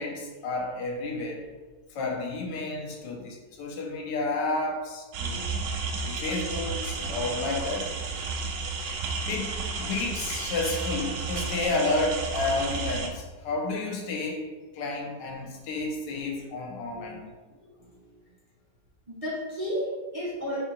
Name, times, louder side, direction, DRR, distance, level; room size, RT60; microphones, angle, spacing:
voice 1, 0.0-1.4 1.9-5.4 6.1-7.9 9.3-17.3, left 3 dB, 80° left, 0 dB, 1.4 m, -31 dB
sound 1, 5.1-13.1, right 4 dB, 90° right, 1.3 m, -32 dB
voice 2, 16.9-17.2 17.8-17.9 19.1-20.6, equal, 30° right, -8 dB, 0.7 m, -33 dB
3.7 x 2.9 x 3.6 m, 1.3 s
omnidirectional pair, 1.9 m